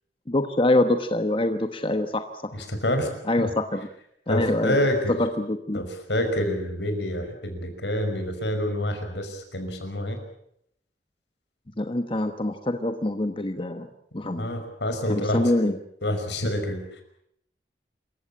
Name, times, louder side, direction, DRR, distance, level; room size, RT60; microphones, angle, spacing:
voice 1, 0.3-2.5 3.3-3.8 4.3-4.8 5.2-5.8 11.8-13.9 14.1-14.5 15.1-15.8, left 1 dB, 30° left, 7 dB, 1.1 m, -25 dB
voice 2, 2.5-3.5 4.3-5.1 5.7-10.2 14.4-15.5 16.0-17.0, left 1 dB, 75° left, 6 dB, 5.5 m, -27 dB
27.5 x 15.5 x 8.7 m, 0.73 s
head